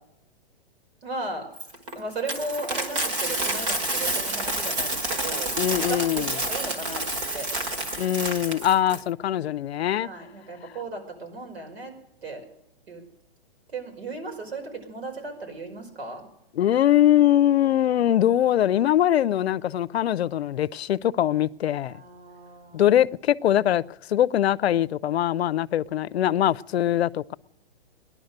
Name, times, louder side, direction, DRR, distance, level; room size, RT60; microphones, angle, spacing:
voice 1, 1.0-1.5 2.0-7.5 10.0-11.9 12.2-12.4 12.9-13.0 13.7-16.2 21.8-22.8, right 2 dB, 85° right, 5.2 m, -36 dB
Coin (dropping), 1.6-9.0, right 1 dB, 30° right, 1.5 m, -29 dB
voice 2, 5.6-6.3 8.0-10.1 16.5-21.9 22.7-23.8 24.1-27.3, left 11 dB, 90° left, 0.6 m, -22 dB
18.0 x 11.0 x 6.6 m
hypercardioid pair, 175°, 31 cm